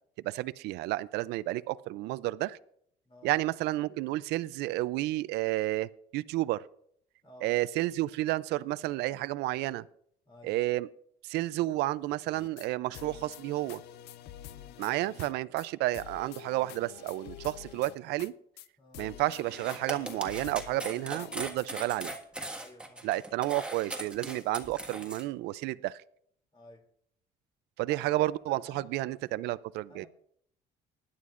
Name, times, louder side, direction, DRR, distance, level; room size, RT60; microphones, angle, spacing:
voice 1, 0.2-2.6 3.2-6.6 7.4-9.8 10.4-10.9 11.2-13.8 14.8-18.3 19.0-22.1 23.0-26.0 27.8-30.1, right 17 dB, 85° right, 17 dB, 0.4 m, -31 dB
voice 2, 7.2-7.6 10.2-10.6 14.5-14.8 18.8-19.1 22.5-23.1 26.5-26.8 27.9-28.1 28.5-29.1 29.4-29.5 29.9-30.1, left 1 dB, 30° left, 2 dB, 2.8 m, -54 dB
sound 1, 12.3-12.7 12.9-15.3 15.6-15.7 15.9-18.3 18.6-18.7 18.9-21.7, left 11 dB, 85° left, 0.6 m, -47 dB
sound 2, 19.5-25.2, right 1 dB, 5° right, 1.6 m, -39 dB
20.0 x 11.0 x 2.5 m, 0.68 s
cardioid pair, 110°, 17 cm